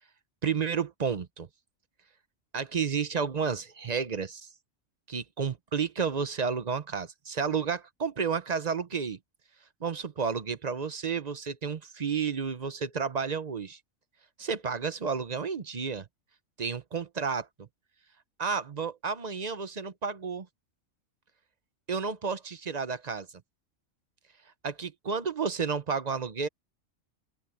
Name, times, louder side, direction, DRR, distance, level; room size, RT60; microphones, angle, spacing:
voice 1, 0.4-1.5 2.5-4.5 5.1-9.2 9.8-13.8 14.4-16.1 16.6-17.7 18.4-20.5 21.9-23.3 24.6-26.5, right 6 dB, 40° right, 0.8 m, -31 dB
open air
omnidirectional pair, 1.4 m